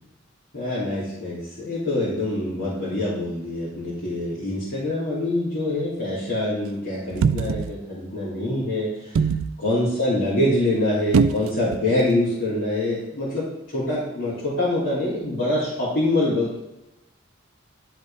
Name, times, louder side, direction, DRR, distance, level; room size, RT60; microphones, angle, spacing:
voice 1, 0.5-9.2 9.6-13.4 13.7-16.5, left 1 dB, 75° left, -11 dB, 3.1 m, -25 dB
sound 1, 7.1-7.8 9.1-9.5 11.1-11.8 12.1-12.2, right 5 dB, 90° right, 0.4 m, -21 dB
11.5 x 5.4 x 3.5 m, 0.92 s
head